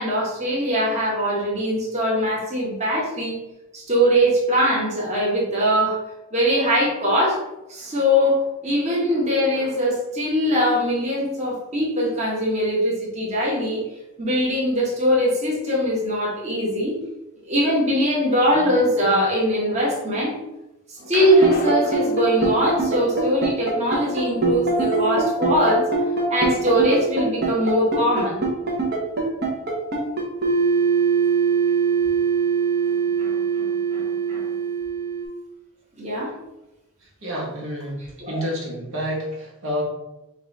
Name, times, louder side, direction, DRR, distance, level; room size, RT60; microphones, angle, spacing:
voice 1, 0.0-3.4 3.7-6.0 6.3-7.4 7.7-13.8 14.2-16.9 17.5-20.3 20.9-28.4 33.2-33.7 33.9-34.4 36.0-36.3 38.2-38.4, equal, 30° right, -5 dB, 1.3 m, -21 dB
sound 1, 21.1-22.8 24.1-24.2, left 2 dB, 40° left, 0.6 m, -35 dB
sound 2, 21.3-35.2, right 4 dB, 45° right, 1.0 m, -22 dB
voice 2, 37.2-38.0 38.3-39.8, equal, 65° right, -3 dB, 1.3 m, -28 dB
5.3 x 2.5 x 4.0 m, 0.96 s
head